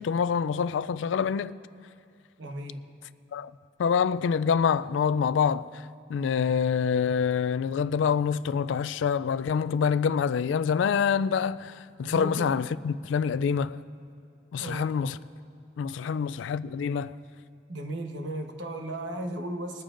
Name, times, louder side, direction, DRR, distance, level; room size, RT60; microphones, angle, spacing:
voice 1, 0.0-1.6 3.3-3.5 3.8-5.7 6.1-13.8 14.5-15.2 15.8-17.2, left 6 dB, 85° left, 0.3 m, -26 dB
voice 2, 2.4-2.8 6.4-6.5 12.0-12.5 14.6-14.9 16.0-16.2 17.7-19.8, right 1 dB, 80° right, 1.2 m, -35 dB
21.5 x 14.0 x 2.5 m
head